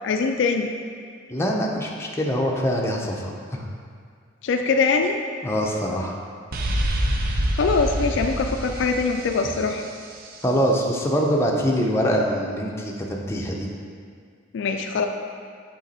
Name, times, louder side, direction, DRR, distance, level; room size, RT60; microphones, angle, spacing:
voice 1, 0.0-0.7 4.4-5.2 7.5-9.8 14.5-15.1, left 4 dB, 65° left, 5 dB, 0.4 m, -22 dB
voice 2, 1.3-3.6 5.4-6.1 10.4-13.7, equal, 15° left, -1 dB, 0.6 m, -24 dB
sound 1, 6.5-10.3, right 1 dB, 50° right, 0.6 m, -26 dB
8.0 x 3.4 x 4.1 m, 2.1 s
head